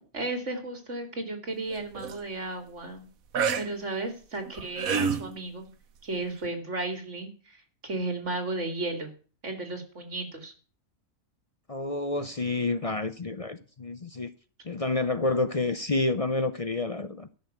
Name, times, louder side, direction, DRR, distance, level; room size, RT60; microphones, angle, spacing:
voice 1, 0.1-3.0 3.5-5.7 6.0-9.1 9.4-10.5, right 2 dB, 60° right, 3.1 m, -34 dB
sound 1, 1.7-2.1 3.3-3.7 4.5-5.3 6.4-6.5, right 6 dB, 85° right, 1.4 m, -27 dB
voice 2, 11.7-14.3 14.6-17.3, left 2 dB, 35° left, 0.7 m, -29 dB
13.5 x 6.8 x 9.2 m
omnidirectional pair, 1.4 m